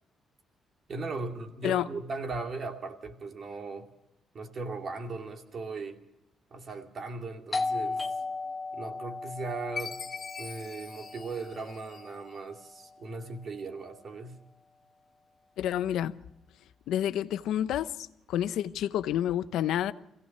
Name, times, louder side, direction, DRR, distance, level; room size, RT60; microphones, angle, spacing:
voice 1, 0.9-3.9 4.3-6.0 6.5-8.0 8.7-10.0 10.4-14.4, right 3 dB, 50° right, 2.5 m, -38 dB
Doorbell, 7.5-12.9, left 3 dB, 25° left, 1.1 m, -36 dB
Chime, 9.8-12.3, left 6 dB, 50° left, 2.1 m, -42 dB
voice 2, 15.6-16.2 16.9-17.9 18.3-19.9, left 11 dB, 85° left, 0.8 m, -28 dB
24.5 x 16.5 x 6.6 m
cardioid pair, 90°, 0 cm